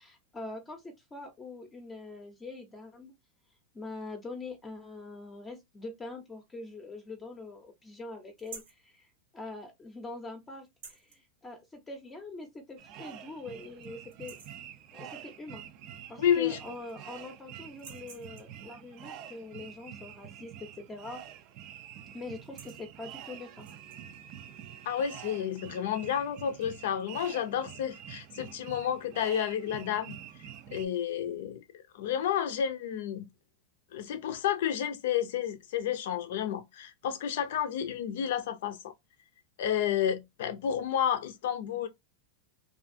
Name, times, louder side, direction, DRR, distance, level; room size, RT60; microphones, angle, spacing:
voice 1, 0.0-3.1 3.7-14.4 14.9-15.7 16.1-21.2 22.1-23.7, left 3 dB, 15° left, 0.6 m, -43 dB
sound 1, 8.4-8.8 10.7-11.2 12.6-12.7 13.1-13.2 13.6-13.9 14.1-14.7 16.0-16.1 16.4-17.1 17.7-18.6 21.0-21.3 21.6-21.8 22.3-22.9 23.5-24.0, right 5 dB, 75° right, 0.8 m, -50 dB
sound 2, 12.8-30.9, right 10 dB, 50° right, 0.3 m, -47 dB
voice 2, 16.2-16.6 24.8-33.3 33.9-38.9 39.6-41.9, left 9 dB, 70° left, 0.5 m, -31 dB
2.5 x 2.4 x 2.5 m
hypercardioid pair, 115°, 0 cm